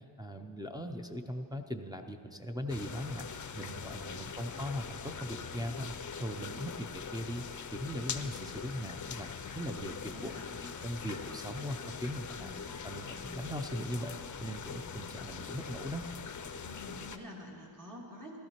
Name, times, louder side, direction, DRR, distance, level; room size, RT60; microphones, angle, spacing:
voice 1, 0.0-7.4 7.7-10.3 10.8-12.5 12.8-16.1, equal, 10° right, 3 dB, 0.4 m, -39 dB
sound 1, 2.7-17.2, left 6 dB, 40° left, 0.5 m, -42 dB
voice 2, 3.6-4.2 8.1-8.6 9.4-9.6 9.9-10.4 12.3-12.7 16.6-18.4, left 1 dB, 40° right, -2 dB, 1.9 m, -49 dB
15.0 x 13.0 x 2.9 m, 2.5 s
wide cardioid pair, 95°, 46 cm